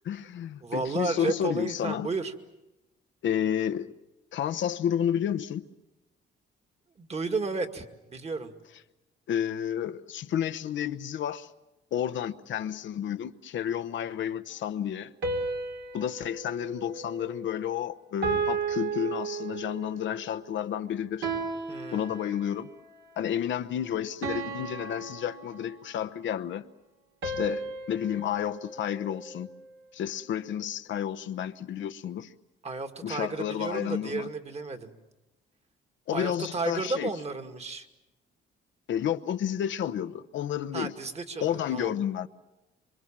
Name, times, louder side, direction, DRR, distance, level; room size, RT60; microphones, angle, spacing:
voice 1, 0.0-2.1 3.2-3.9 4.3-5.6 9.3-11.5 11.9-15.1 15.9-21.3 21.9-22.7 23.2-26.7 27.2-29.5 29.9-32.3 33.0-34.3 36.1-37.1 38.9-40.9 41.4-42.3, left 9 dB, 70° left, 0.9 m, -31 dB
voice 2, 0.6-2.3 7.0-8.5 21.7-22.2 32.6-34.9 36.1-37.9 40.7-41.9, right 3 dB, 30° right, 2.2 m, -33 dB
sound 1, 15.2-17.7 18.2-20.0 21.2-22.8 24.2-26.1 27.2-29.6, right 4 dB, 70° right, 3.5 m, -34 dB
26.5 x 25.0 x 7.5 m
cardioid pair, 90°, 20 cm